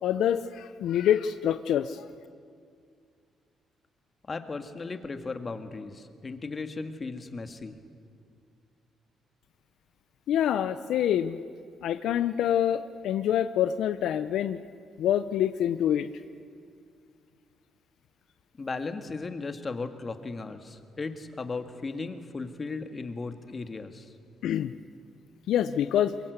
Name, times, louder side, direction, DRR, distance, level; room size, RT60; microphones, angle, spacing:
voice 1, 0.0-2.0 10.3-11.4 11.8-14.6 15.0-16.1 24.4-24.7 25.5-26.1, left 10 dB, 80° left, 11 dB, 0.6 m, -26 dB
voice 2, 4.3-7.7 18.6-24.1, left 3 dB, 30° left, 7 dB, 1.9 m, -36 dB
23.5 x 22.0 x 8.1 m, 2.2 s
cardioid pair, 90°, 0 cm